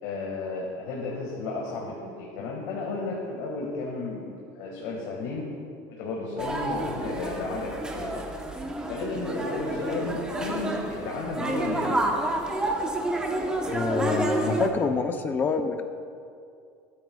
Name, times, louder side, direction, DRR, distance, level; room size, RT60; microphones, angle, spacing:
voice 1, 0.0-4.3 4.5-5.4 5.9-8.3 8.9-12.0, left 3 dB, 65° left, -2 dB, 1.7 m, -33 dB
sound 1, 6.4-14.7, right 2 dB, 10° right, 0.9 m, -29 dB
voice 2, 13.7-15.8, left 5 dB, 20° left, 7 dB, 0.6 m, -27 dB
21.5 x 8.5 x 2.3 m, 2.4 s
cardioid pair, 160°, 9 cm